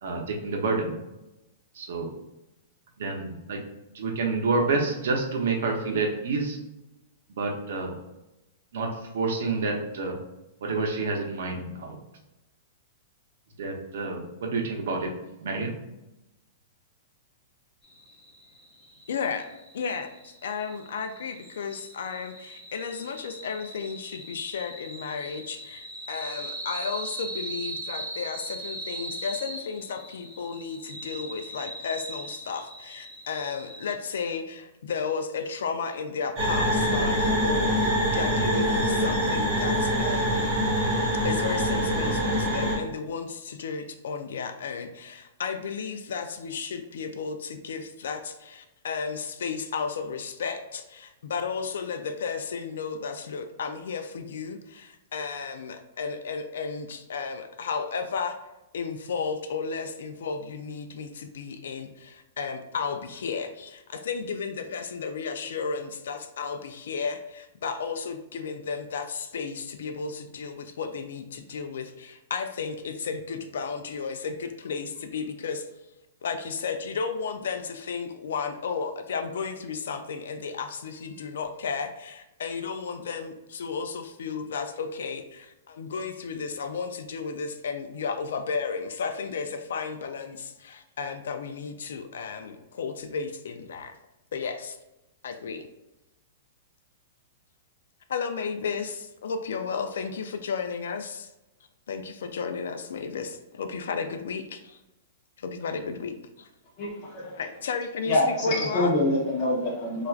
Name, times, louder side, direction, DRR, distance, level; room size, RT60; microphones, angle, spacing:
voice 1, 0.0-1.0 1.7-2.1 3.0-3.6 3.9-6.6 7.3-7.9 8.7-8.9 9.1-10.2 10.6-12.0 13.6-15.1 15.4-15.8, right 3 dB, 60° right, 0.7 m, -28 dB
sound 1, 17.8-33.9, right 2 dB, 5° right, 0.8 m, -40 dB
voice 2, 19.1-19.5 19.7-40.5 41.2-58.4 58.7-75.7 76.2-93.9 94.3-94.8 95.2-95.7 98.1-101.3 101.9-104.8 105.4-106.5 107.3-108.9, left 5 dB, 75° left, 0.4 m, -33 dB
sound 2, 36.4-42.8, equal, 25° right, 1.2 m, -24 dB
voice 3, 106.8-107.4 108.0-110.1, left 1 dB, 30° left, 0.8 m, -26 dB
4.4 x 2.4 x 2.4 m
supercardioid pair, 175°, 0 cm